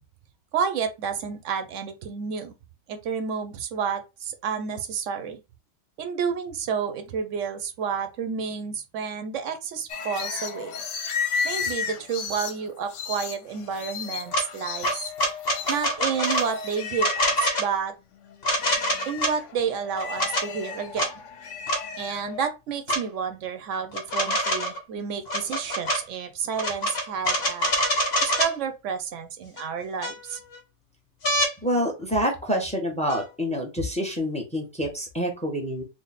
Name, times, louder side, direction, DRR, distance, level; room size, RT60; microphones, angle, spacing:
voice 1, 0.5-2.5 2.9-5.4 6.0-10.7 11.4-15.1 15.7-17.9 19.1-21.1 22.0-27.7 28.2-30.4, right 6 dB, 90° right, 1.0 m, -30 dB
sound 1, 9.9-17.7 18.1-22.4, left 6 dB, 80° left, 1.0 m, -34 dB
sound 2, 14.3-14.5 14.8-16.5 17.0-17.7 18.4-19.3 20.0-20.5 21.0-21.1 21.7-21.8 22.9-23.0 23.9-24.8 25.3-26.0 26.5-28.5 29.6-29.7 30.0-30.6 31.2-31.5 33.1-33.2, equal, 60° left, 1.1 m, -25 dB
voice 2, 31.6-35.8, equal, 5° left, 0.7 m, -27 dB
3.5 x 2.1 x 4.0 m
omnidirectional pair, 1.3 m